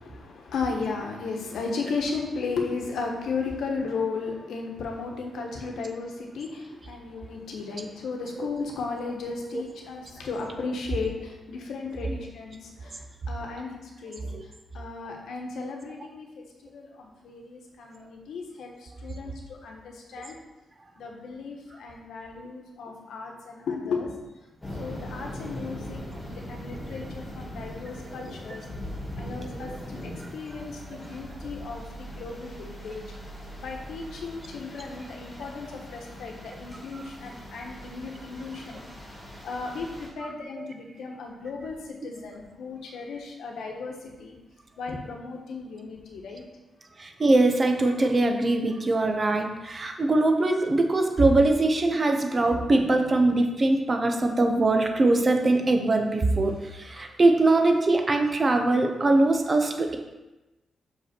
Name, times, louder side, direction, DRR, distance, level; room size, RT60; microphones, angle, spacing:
voice 1, 0.0-20.4 21.0-24.3 24.8-26.0 26.3-28.7 29.2-33.0 33.6-38.8 39.4-44.4 44.8-46.4, left 4 dB, 80° left, 1 dB, 1.2 m, -35 dB
sound 1, 24.6-40.1, equal, 10° left, 2.1 m, -40 dB
voice 2, 40.2-40.7 47.0-60.0, right 2 dB, 25° right, 4 dB, 0.6 m, -22 dB
6.0 x 5.3 x 4.4 m, 1.0 s
wide cardioid pair, 175°, 0 cm